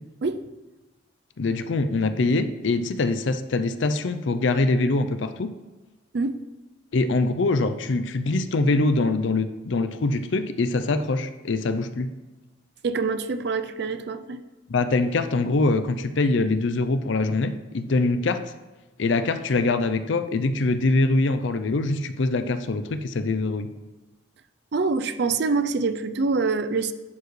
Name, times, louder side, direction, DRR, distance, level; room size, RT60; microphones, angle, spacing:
voice 1, 1.4-5.5 6.9-12.1 14.7-18.4 19.0-23.7, left 3 dB, 65° left, 10 dB, 0.5 m, -23 dB
voice 2, 12.8-14.4 24.7-26.9, right 4 dB, 55° right, 11 dB, 0.4 m, -25 dB
10.5 x 4.8 x 3.2 m, 1.2 s
head